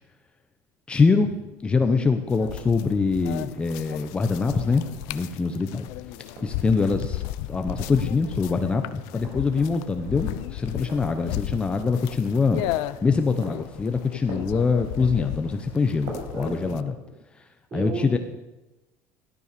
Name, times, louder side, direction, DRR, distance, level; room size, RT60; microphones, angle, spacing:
voice 1, 0.9-5.9 6.4-7.2 7.5-12.6 13.0-16.9 17.7-18.2, left 4 dB, 15° left, 7 dB, 1.0 m, -24 dB
sound 1, 1.4-16.5, right 2 dB, 75° right, 6.0 m, -46 dB
sound 2, 2.3-16.8, left 16 dB, 75° left, 0.7 m, -35 dB
voice 2, 16.3-16.8 17.1-17.2 17.7-18.2, right 3 dB, 35° right, 0 dB, 5.3 m, -33 dB
16.5 x 12.5 x 6.9 m, 1.0 s
cardioid pair, 150°, 6 cm